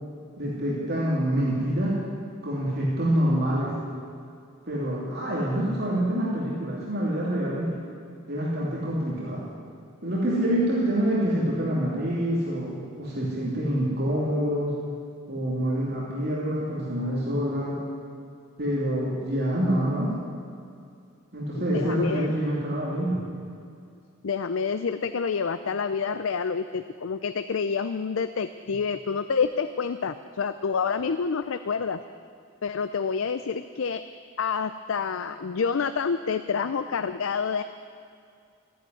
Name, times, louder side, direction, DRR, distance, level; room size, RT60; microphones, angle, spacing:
voice 1, 0.4-2.0 2.4-3.8 4.7-7.7 8.3-9.4 10.0-14.8 15.3-17.8 18.6-20.1 21.3-23.2, right 1 dB, 50° right, -6 dB, 2.9 m, -26 dB
voice 2, 21.5-22.3 24.2-32.0 32.6-34.0 34.4-37.6, left 5 dB, 75° left, 11 dB, 0.5 m, -28 dB
14.0 x 11.0 x 9.5 m, 2.4 s
head